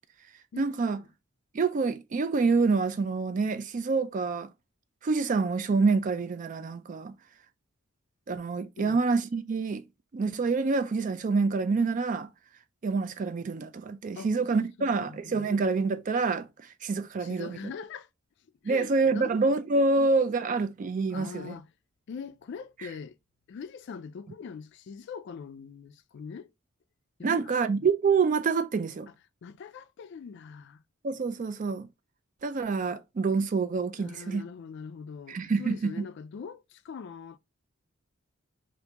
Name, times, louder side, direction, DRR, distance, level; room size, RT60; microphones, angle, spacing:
voice 1, 0.6-1.0 1.5-4.5 5.0-7.1 8.3-9.8 10.1-12.3 12.8-17.6 18.6-21.6 27.2-29.1 31.0-31.9 32.4-34.4 35.3-36.0, right 4 dB, 40° right, 0.3 m, -27 dB
voice 2, 14.8-15.5 17.2-18.1 18.6-19.3 20.0-20.1 21.1-21.7 22.1-23.2 23.5-26.5 27.2-27.9 29.4-30.8 34.0-37.4, left 6 dB, 55° left, 0.3 m, -42 dB
2.9 x 2.5 x 3.3 m
head